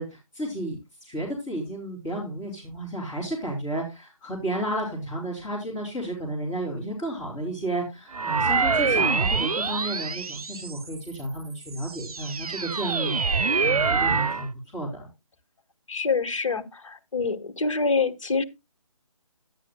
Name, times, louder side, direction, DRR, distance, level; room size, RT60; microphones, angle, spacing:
voice 1, 0.0-15.1, right 1 dB, 10° left, 2.8 m, -32 dB
sound 1, 8.1-11.0 11.6-14.5, right 4 dB, 85° right, 0.6 m, -25 dB
voice 2, 15.9-18.4, left 4 dB, 60° left, 1.3 m, -26 dB
11.5 x 9.4 x 2.2 m
figure-of-eight pair, 155°, 18 cm